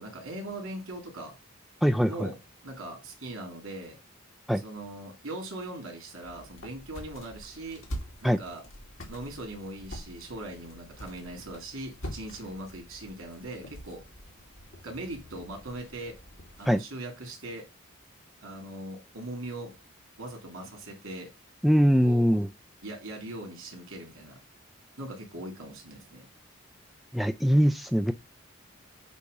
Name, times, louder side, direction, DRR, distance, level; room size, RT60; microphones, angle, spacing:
voice 1, 0.0-1.3 2.1-2.4 2.6-4.0 4.6-7.8 8.2-8.6 9.1-14.0 14.8-16.1 16.6-17.6 18.4-19.7 20.2-21.3 22.0-22.3 22.8-24.4 25.0-26.3, right 1 dB, 80° right, 3.1 m, -40 dB
voice 2, 1.8-2.1 4.5-4.6 8.2-8.4 16.7-16.8 21.6-22.5 27.1-28.1, equal, ahead, 0.4 m, -22 dB
sound 1, 6.2-16.8, equal, 70° left, 2.3 m, -45 dB
8.3 x 3.0 x 5.3 m
head